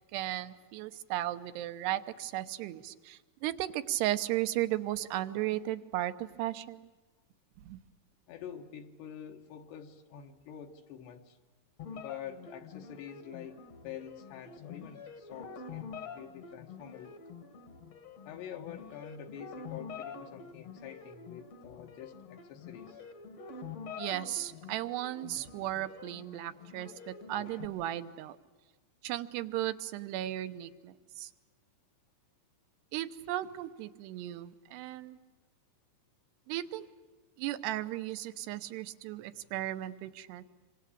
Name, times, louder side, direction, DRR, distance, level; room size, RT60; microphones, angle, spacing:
voice 1, 0.1-6.9 7.7-7.8 24.0-28.4 29.0-31.3 32.9-35.2 36.5-36.9 37.4-40.5, right 14 dB, 75° right, 12 dB, 2.9 m, -35 dB
voice 2, 8.3-11.4 11.9-17.2 18.3-23.0, left 9 dB, 70° left, 3 dB, 3.5 m, -47 dB
sound 1, 11.8-27.7, left 5 dB, 50° left, 2.1 m, -47 dB
26.5 x 25.5 x 8.6 m, 1.2 s
omnidirectional pair, 5.2 m